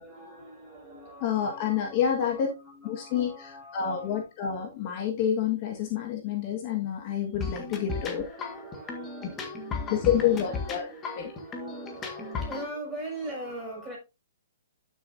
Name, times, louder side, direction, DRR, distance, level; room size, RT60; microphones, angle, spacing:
voice 1, 0.0-4.3 7.9-14.0, right 1 dB, 10° right, 6.1 m, -42 dB
voice 2, 1.2-2.5 2.8-8.2 9.9-10.9 11.2-11.3, left 9 dB, 40° left, 1.6 m, -28 dB
sound 1, 7.4-12.7, left 4 dB, 20° left, 1.7 m, -36 dB
11.0 x 6.6 x 2.7 m
hypercardioid pair, 145°, 0 cm